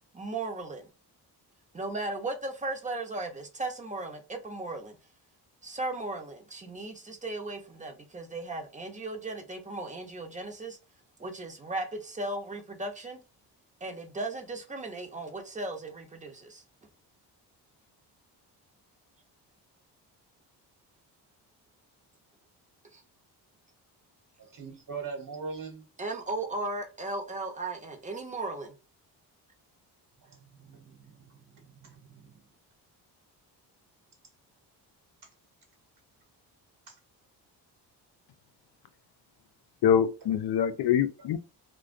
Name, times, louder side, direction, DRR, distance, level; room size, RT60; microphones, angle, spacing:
voice 1, 0.1-0.9 1.7-5.0 5.6-10.8 11.2-13.2 13.8-16.6 22.9-23.0 26.0-28.7, right 2 dB, 20° right, 0.8 m, -36 dB
voice 2, 24.4-25.9 30.2-32.5 36.9-37.0 40.6-40.7, right 5 dB, 50° right, 1.2 m, -42 dB
voice 3, 39.8-41.4, left 8 dB, 65° left, 0.5 m, -24 dB
2.2 x 2.2 x 2.4 m
cardioid pair, 80°, 41 cm